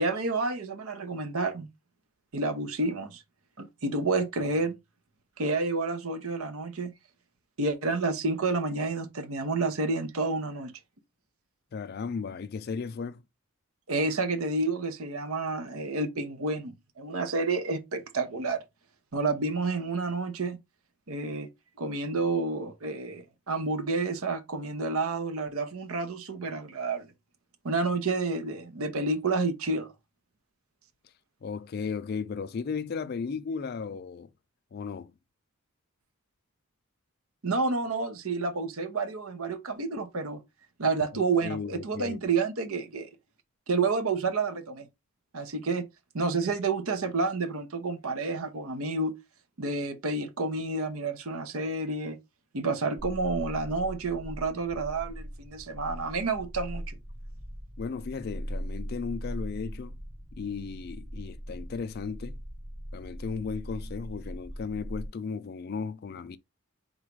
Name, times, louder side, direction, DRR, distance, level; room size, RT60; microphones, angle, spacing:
voice 1, 0.0-1.7 2.3-3.2 3.6-4.8 5.4-6.9 7.6-10.7 13.9-18.6 19.1-20.6 21.1-21.5 21.8-27.1 27.6-29.9 37.4-40.4 40.8-43.1 43.7-44.9 45.3-45.9 46.1-49.1 49.6-52.2 52.5-57.0, right 3 dB, 80° right, 0.8 m, -29 dB
voice 2, 11.7-13.2 31.4-34.3 34.7-35.1 41.4-42.2 57.8-60.0 60.3-62.4 62.9-66.4, left 5 dB, 45° left, 0.3 m, -35 dB
sound 1, 53.0-65.1, equal, 20° right, 0.6 m, -40 dB
3.9 x 2.4 x 4.6 m
head